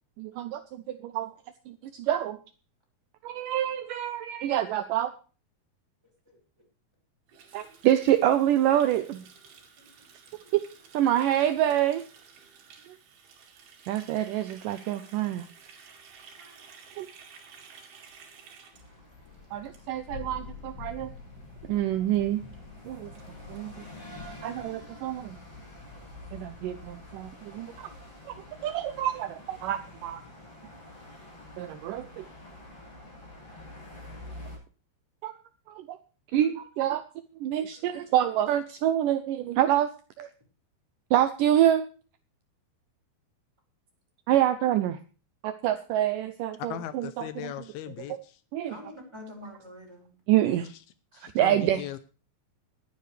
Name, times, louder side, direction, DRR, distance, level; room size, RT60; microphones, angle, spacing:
voice 1, 0.2-1.3 1.7-2.4 3.2-5.1 7.5-9.2 10.5-10.6 10.9-12.0 12.9-13.0 13.9-15.4 17.0-17.1 19.5-21.1 21.7-22.4 22.8-23.1 23.5-23.8 24.4-25.4 26.3-27.9 28.3-28.4 28.6-30.2 31.6-32.2 35.2-35.3 35.7-36.0 36.3-37.0 37.4-39.9 40.2-40.3 41.1-41.8 44.3-45.0 45.4-47.1 48.5-48.7 50.3-50.7 51.2-51.8, right 12 dB, 85° right, 11 dB, 1.8 m, -26 dB
Water tap faucet, 7.3-20.3 20.6-20.8 21.1-21.5 21.7-21.8 22.1-22.2 22.5-22.6 22.8-23.9, right 6 dB, 70° right, 4.3 m, -53 dB
voice 2, 9.8-10.5 16.3-17.0 25.6-26.1 28.5-28.6 48.7-50.1, left 1 dB, 5° right, -1 dB, 4.9 m, -48 dB
sound 1, 18.7-34.6, left 1 dB, 35° left, 8.3 m, -48 dB
Thunder, 19.1-27.5, left 5 dB, 60° left, 8.0 m, -48 dB
voice 3, 46.7-48.4 50.6-50.8 51.1-52.0, left 12 dB, 80° left, 13 dB, 2.5 m, -39 dB
20.0 x 9.6 x 3.3 m, 0.37 s
omnidirectional pair, 4.6 m